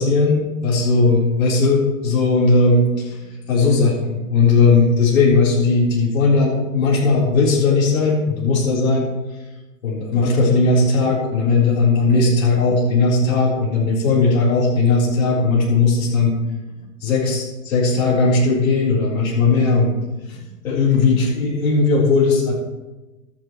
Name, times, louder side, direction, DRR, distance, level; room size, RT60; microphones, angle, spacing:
voice 1, 0.0-3.2 3.5-9.1 9.8-16.3 17.0-19.9 20.3-20.4 20.6-22.5, left 3 dB, 75° left, -5 dB, 4.1 m, -17 dB
14.5 x 10.5 x 3.1 m, 1.1 s
hypercardioid pair, 110°, 41 cm